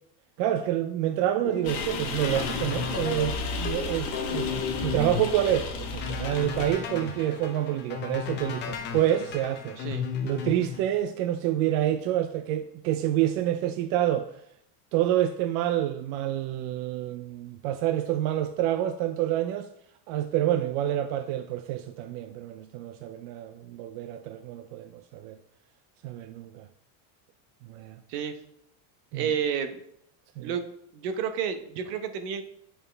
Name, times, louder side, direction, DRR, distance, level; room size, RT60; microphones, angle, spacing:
voice 1, 0.4-4.5 4.8-9.8 10.2-14.3 14.9-19.7 20.1-25.4 26.0-26.7 27.7-28.0 29.1-29.3 30.4-30.5, right 12 dB, 65° right, 0.5 m, -28 dB
sound 1, 1.4-10.8, left 7 dB, 25° left, 0.4 m, -35 dB
sound 2, 1.6-6.7, left 3 dB, 45° left, 1.1 m, -33 dB
voice 2, 29.1-29.8 30.4-30.7 30.9-32.4, right 7 dB, 80° right, 1.0 m, -30 dB
8.8 x 4.4 x 3.3 m
cardioid pair, 165°, 48 cm